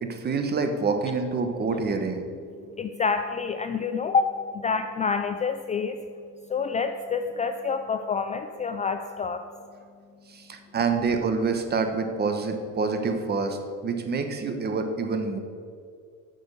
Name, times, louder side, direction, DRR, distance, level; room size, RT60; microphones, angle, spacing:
voice 1, 0.0-2.2 10.3-15.4, right 4 dB, 30° right, 6 dB, 1.1 m, -27 dB
voice 2, 2.8-6.0 6.5-9.4, left 5 dB, 25° left, 7 dB, 0.3 m, -27 dB
9.1 x 6.2 x 6.8 m, 2.2 s
cardioid pair, 130°, 33 cm